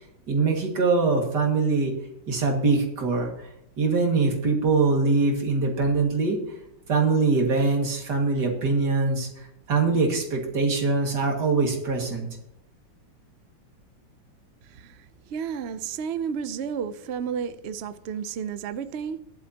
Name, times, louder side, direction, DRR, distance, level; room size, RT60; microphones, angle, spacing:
voice 1, 0.3-1.9 2.3-3.3 3.8-6.4 6.9-9.3 9.7-12.3, right 3 dB, 60° right, 2.7 m, -23 dB
voice 2, 14.6-19.2, right 7 dB, 85° right, 0.5 m, -32 dB
20.5 x 7.8 x 2.9 m
omnidirectional pair, 2.1 m